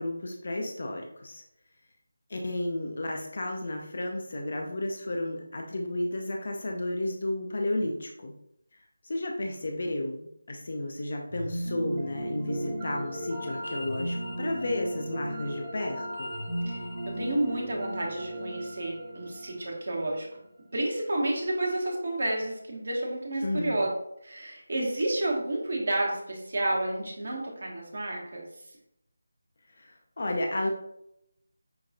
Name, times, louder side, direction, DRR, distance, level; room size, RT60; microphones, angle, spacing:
voice 1, 0.0-1.4 2.3-8.3 9.0-16.3 23.4-23.8 29.8-30.7, left 1 dB, 50° left, 2 dB, 0.5 m, -32 dB
sound 1, 11.3-20.4, right 1 dB, 20° right, 1.0 m, -36 dB
voice 2, 17.1-20.3 20.7-23.9 24.2-28.5, right 1 dB, 55° right, -1 dB, 1.1 m, -30 dB
5.7 x 2.3 x 2.6 m, 0.78 s
figure-of-eight pair, 160°, 0 cm